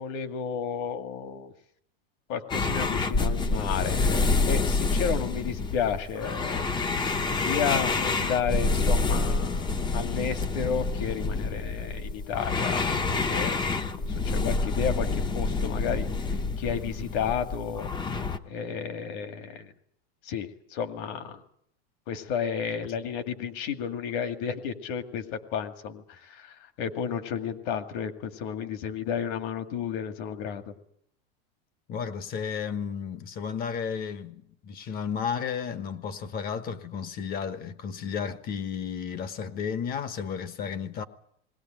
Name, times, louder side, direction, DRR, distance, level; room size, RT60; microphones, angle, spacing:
voice 1, 0.0-1.5 2.3-6.7 7.3-13.6 14.2-16.1 16.6-17.9 18.5-19.7 20.2-21.4 22.1-25.2 25.5-30.7, left 7 dB, 55° left, 2.2 m, -32 dB
sound 1, 2.5-18.4, left 3 dB, 15° left, 0.9 m, -27 dB
voice 2, 31.9-41.0, left 7 dB, 30° left, 1.2 m, -33 dB
20.0 x 18.0 x 9.0 m
supercardioid pair, 155°, 30 cm